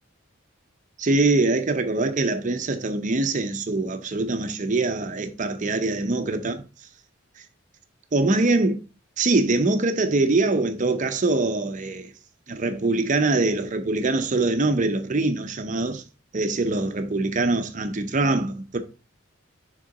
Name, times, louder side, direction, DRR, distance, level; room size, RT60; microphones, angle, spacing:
voice 1, 1.0-6.6 8.1-8.8 9.2-12.1 12.5-16.0 16.3-18.8, right 2 dB, 35° right, 0.6 m, -23 dB
6.7 x 3.7 x 3.8 m
head